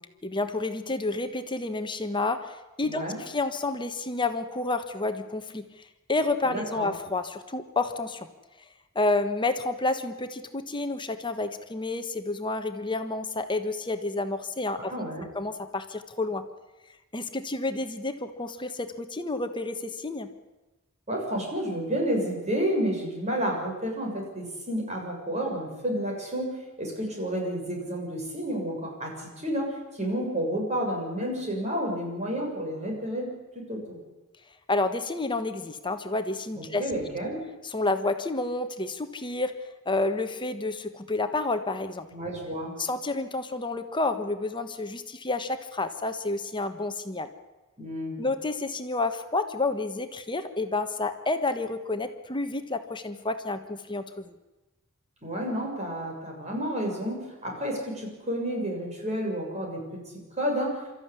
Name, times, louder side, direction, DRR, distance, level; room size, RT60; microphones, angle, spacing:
voice 1, 0.2-5.6 6.1-8.3 8.9-14.9 15.3-16.4 17.1-20.3 34.7-36.8 37.6-42.1 42.8-47.3 48.2-54.3, left 2 dB, 20° left, 8 dB, 1.4 m, -30 dB
voice 2, 2.8-3.2 6.5-6.9 14.8-15.2 21.1-34.0 36.5-37.4 42.1-42.7 47.8-48.2 55.2-59.8 60.4-60.8, equal, 30° right, 0 dB, 7.0 m, -30 dB
25.5 x 14.0 x 9.8 m, 1.1 s
head